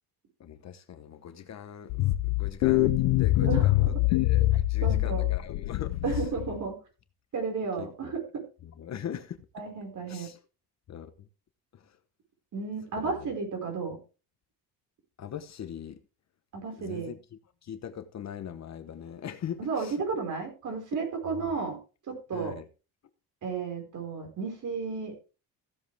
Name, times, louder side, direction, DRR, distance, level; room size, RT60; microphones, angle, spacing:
voice 1, 0.4-6.0 7.8-7.9 8.6-9.6 10.1-10.4 10.9-11.3 11.7-12.0 13.0-13.3 15.2-16.0 16.8-17.2 17.6-19.9 21.3-21.5 22.3-22.6, left 9 dB, 40° left, 1.0 m, -41 dB
sound 1, 1.9-6.6, left 17 dB, 90° left, 0.7 m, -24 dB
voice 2, 3.4-3.9 4.8-5.3 6.0-6.8 7.3-8.4 9.5-10.3 12.5-14.0 16.5-17.1 19.6-21.8 22.1-22.6 23.4-25.1, right 5 dB, 45° right, 4.9 m, -33 dB
15.5 x 7.5 x 3.4 m
cardioid pair, 140°, 40 cm